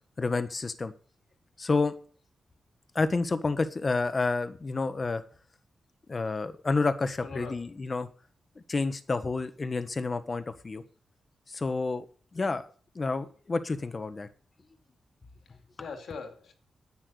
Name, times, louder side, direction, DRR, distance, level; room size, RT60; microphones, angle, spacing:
voice 1, 0.2-0.9 1.6-1.9 2.9-5.2 6.1-8.1 8.7-10.8 11.5-12.0 12.3-12.6 12.9-14.3, left 3 dB, 35° left, 10 dB, 1.4 m, -29 dB
voice 2, 7.2-7.7 15.5-16.5, left 4 dB, 85° left, 4 dB, 2.7 m, -42 dB
10.5 x 9.1 x 6.6 m, 0.42 s
cardioid pair, 95°, 0 cm